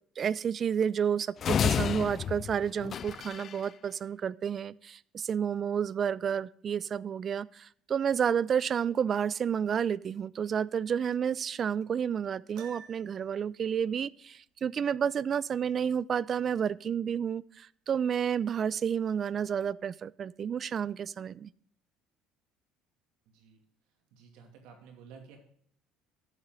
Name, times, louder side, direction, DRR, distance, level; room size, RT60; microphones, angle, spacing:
voice 1, 0.2-21.5, right 8 dB, 40° right, 21 dB, 0.3 m, -30 dB
sound 1, 1.4-3.6, left 8 dB, 45° left, 0.3 m, -30 dB
Piano, 12.6-13.4, right 7 dB, 65° right, 1.2 m, -49 dB
voice 2, 23.3-23.6 24.1-25.4, right 6 dB, 80° right, 3 dB, 2.6 m, -52 dB
12.0 x 7.0 x 3.9 m, 0.64 s
cardioid pair, 105°, 0 cm